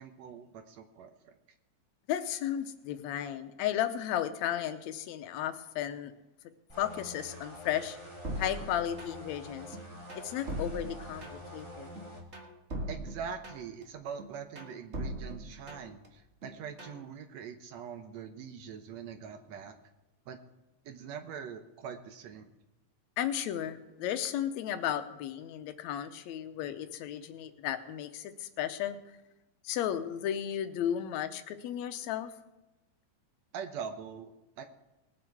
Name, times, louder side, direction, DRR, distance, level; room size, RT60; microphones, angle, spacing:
voice 1, 0.0-1.3 12.9-19.7 20.3-20.4 20.9-22.5 33.5-34.6, right 7 dB, 70° right, 8 dB, 1.9 m, -43 dB
voice 2, 2.1-6.1 6.8-8.0 8.4-9.8 10.1-11.9 23.2-29.0 29.6-32.3, left 10 dB, 75° left, 10 dB, 2.0 m, -34 dB
sound 1, 6.7-12.2, equal, 10° right, 1.5 m, -47 dB
sound 2, 8.2-9.4 9.7-11.6 12.0-13.8 14.2-16.1 16.4-17.0, right 1 dB, 30° right, 1.4 m, -40 dB
20.5 x 7.5 x 4.7 m, 0.99 s
omnidirectional pair, 3.4 m